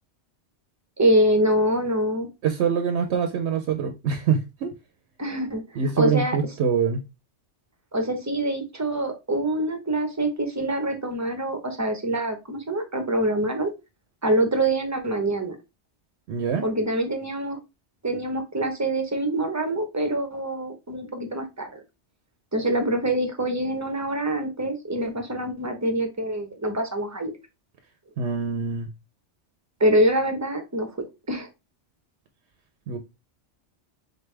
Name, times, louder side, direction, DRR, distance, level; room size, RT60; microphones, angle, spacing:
voice 1, 1.0-2.3 5.2-6.4 7.9-13.7 14.2-15.6 16.6-17.6 18.0-21.8 22.5-27.3 29.8-30.9 31.3-31.5, right 1 dB, 15° right, 0.8 m, -25 dB
voice 2, 2.4-4.7 5.7-7.0 16.3-16.6 28.2-28.9 32.9-33.0, right 6 dB, 70° right, 0.8 m, -24 dB
4.1 x 3.3 x 3.2 m
omnidirectional pair, 1.2 m